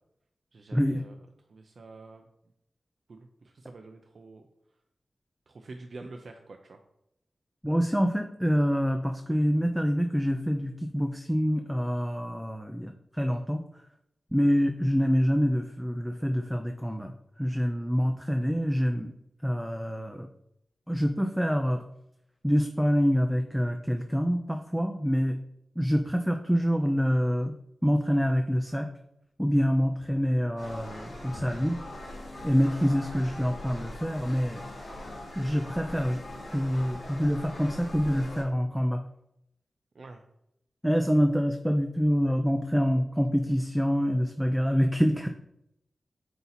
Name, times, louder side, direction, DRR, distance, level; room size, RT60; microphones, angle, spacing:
voice 1, 0.5-1.1 1.5-2.2 3.1-4.4 5.5-6.8 39.9-40.2, right 3 dB, 65° right, 4 dB, 0.5 m, -46 dB
voice 2, 7.6-13.6 14.3-19.1 19.4-20.3 20.9-21.8 22.4-25.4 25.8-27.5 27.8-28.9 29.4-31.8 32.4-34.6 35.4-36.2 36.5-39.0 40.8-45.3, equal, ahead, 5 dB, 0.4 m, -26 dB
sound 1, 30.6-38.4, left 1 dB, 85° left, 2.4 m, -41 dB
8.0 x 2.8 x 4.1 m, 0.80 s
wide cardioid pair, 100°, 0 cm